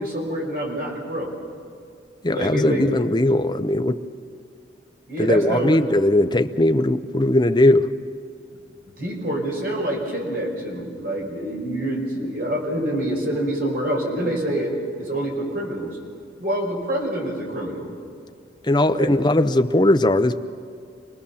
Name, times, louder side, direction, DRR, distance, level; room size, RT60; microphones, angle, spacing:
voice 1, 0.0-1.3 2.3-2.9 3.9-4.0 5.1-5.8 9.0-16.0 16.4-17.9 18.7-19.1, right 1 dB, 55° right, -1 dB, 5.3 m, -26 dB
voice 2, 2.2-4.0 5.2-7.9 18.6-20.4, left 1 dB, 25° left, 9 dB, 0.7 m, -19 dB
26.5 x 19.0 x 7.1 m, 2.4 s
head